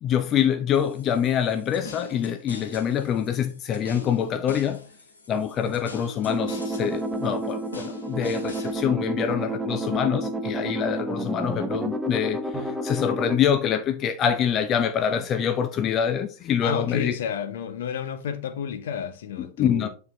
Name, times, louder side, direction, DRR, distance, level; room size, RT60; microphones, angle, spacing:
voice 1, 0.0-4.8 5.3-17.2 19.6-19.9, left 8 dB, 30° left, 0.6 m, -25 dB
sound 1, 0.7-8.7, left 4 dB, 75° left, 1.7 m, -43 dB
sound 2, 1.3-2.0 5.6-8.5 12.5-15.8, right 2 dB, 15° left, 2.2 m, -49 dB
sound 3, 6.3-13.4, right 1 dB, 10° right, 0.9 m, -30 dB
voice 2, 16.6-19.9, left 8 dB, 60° left, 0.9 m, -30 dB
9.1 x 4.5 x 3.2 m
figure-of-eight pair, 90°, 0 cm